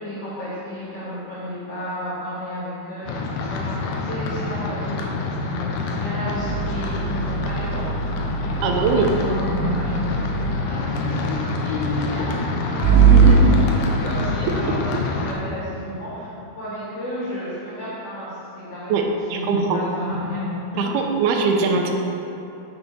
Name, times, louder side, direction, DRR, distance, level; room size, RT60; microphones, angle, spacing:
voice 1, 0.0-8.0 8.4-21.0, left 1 dB, 45° left, -9 dB, 2.7 m, -32 dB
sound 1, 3.1-15.3, left 3 dB, 80° left, 2.6 m, -27 dB
sound 2, 6.3-10.7 12.8-13.3, right 7 dB, 65° right, 2.3 m, -20 dB
voice 2, 8.6-9.1 13.0-13.5 18.9-19.0 19.3-19.8 20.8-21.9, right 5 dB, 90° right, 2 dB, 2.7 m, -21 dB
9.3 x 6.9 x 4.1 m, 3.0 s
omnidirectional pair, 4.4 m